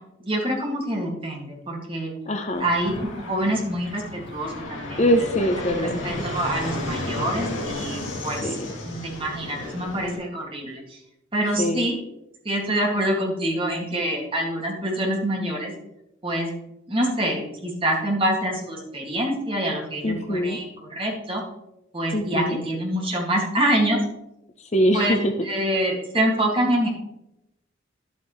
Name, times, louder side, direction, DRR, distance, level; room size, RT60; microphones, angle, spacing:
voice 1, 0.2-2.1 2.6-5.0 5.8-8.5 8.8-11.0 11.3-12.0 12.5-15.7 16.2-16.5 16.9-21.4 21.9-24.0 24.9-26.9, right 1 dB, 25° right, -1 dB, 2.0 m, -26 dB
voice 2, 2.3-2.7 5.0-6.2 8.4-8.7 11.6-11.9 20.0-20.6 22.1-22.6 24.7-25.3, equal, 35° left, 6 dB, 0.6 m, -23 dB
Fixed-wing aircraft airplane, 2.5-10.2, left 1 dB, 75° left, 2.4 m, -33 dB
10.5 x 8.0 x 3.1 m, 0.89 s
head